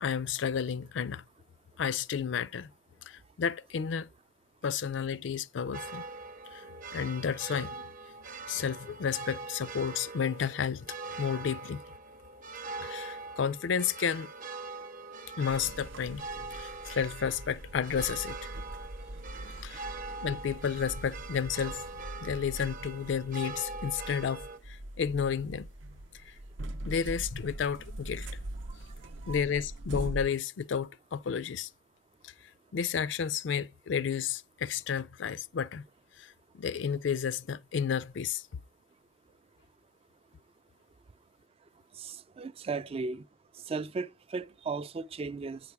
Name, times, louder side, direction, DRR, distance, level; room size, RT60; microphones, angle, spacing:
voice 1, 0.0-1.3 1.8-2.7 3.0-4.1 4.6-6.1 6.5-7.9 8.5-11.8 12.8-14.3 15.4-16.3 16.5-18.5 19.6-19.8 20.2-21.8 22.2-25.7 26.2-26.3 26.8-28.3 29.3-31.7 32.2-35.8 36.2-38.5, left 7 dB, 75° left, 0.4 m, -32 dB
sound 1, 5.7-24.6, right 3 dB, 45° right, 0.7 m, -43 dB
sound 2, 15.5-30.3, right 1 dB, 85° right, 0.7 m, -42 dB
voice 2, 42.0-43.2 43.7-45.6, right 4 dB, 30° right, 0.3 m, -36 dB
9.0 x 5.8 x 4.6 m
head